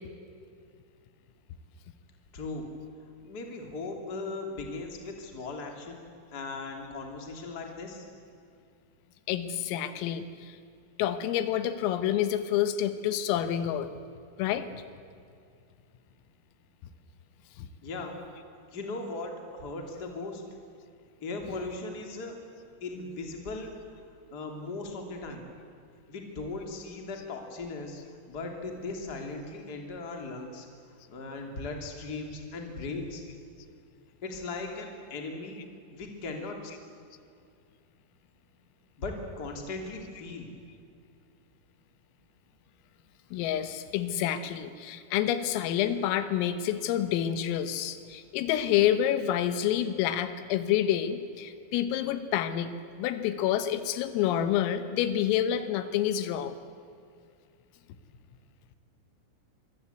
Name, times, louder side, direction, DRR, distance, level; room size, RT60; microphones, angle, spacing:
voice 1, 2.3-2.7 3.2-6.0 6.3-8.0 17.8-18.2 18.7-20.4 21.2-22.4 22.8-23.7 24.3-25.4 26.1-28.0 28.3-30.7 31.1-33.2 34.2-35.6 35.9-36.7 39.0-40.5, left 3 dB, 25° left, 2 dB, 2.4 m, -38 dB
voice 2, 9.3-10.6 11.0-13.9 14.4-14.7 17.6-17.7 21.4-21.6 27.2-27.3 43.3-52.7 53.0-56.6, left 10 dB, 85° left, 11 dB, 3.7 m, -28 dB
25.5 x 23.5 x 8.1 m, 2.3 s
omnidirectional pair, 5.9 m